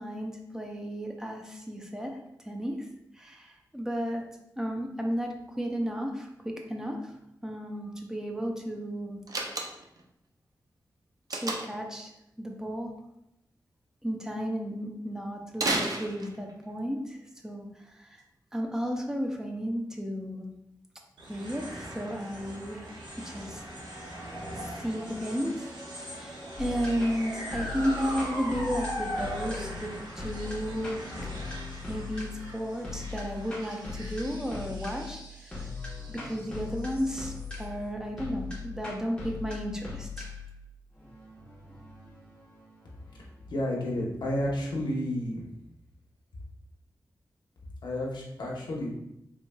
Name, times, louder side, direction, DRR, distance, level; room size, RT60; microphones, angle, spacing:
voice 1, 0.0-2.2 2.4-2.8 3.2-4.2 4.6-7.0 7.4-9.2 11.3-12.1 12.4-12.9 14.0-17.2 17.4-18.2 18.5-20.5 21.3-22.8 23.2-23.6 24.6-25.7 26.0-31.0 31.9-35.7 36.1-40.3, equal, 5° right, 1 dB, 0.5 m, -33 dB
Slam, 9.3-10.0 11.3-11.9 15.5-16.6, right 2 dB, 55° right, 0.5 m, -31 dB
sound 1, 21.2-37.6, equal, 90° right, 1.0 m, -40 dB
sound 2, 26.6-43.7, left 4 dB, 15° left, 1.1 m, -40 dB
voice 2, 43.5-45.4 47.8-49.0, left 1 dB, 75° left, -3 dB, 0.9 m, -31 dB
4.7 x 3.6 x 2.2 m, 0.81 s
wide cardioid pair, 145°, 8 cm